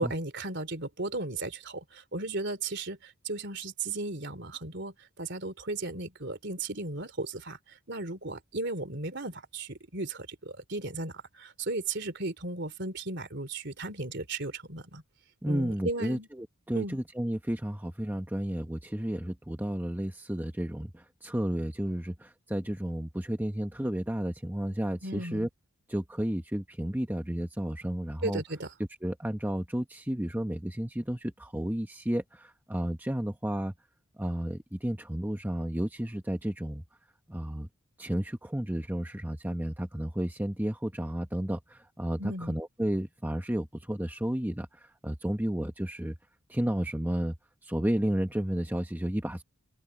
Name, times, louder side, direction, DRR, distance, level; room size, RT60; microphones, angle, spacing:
voice 1, 0.0-15.0 15.5-16.3 16.7-17.0 25.0-25.5 28.2-28.7 42.2-42.6, right 2 dB, 50° right, 3.5 m, -35 dB
voice 2, 15.4-25.5 25.9-28.4 29.0-33.7 34.2-36.8 37.3-37.7 38.0-46.2 46.5-47.4 47.6-49.4, equal, 10° right, 1.0 m, -32 dB
head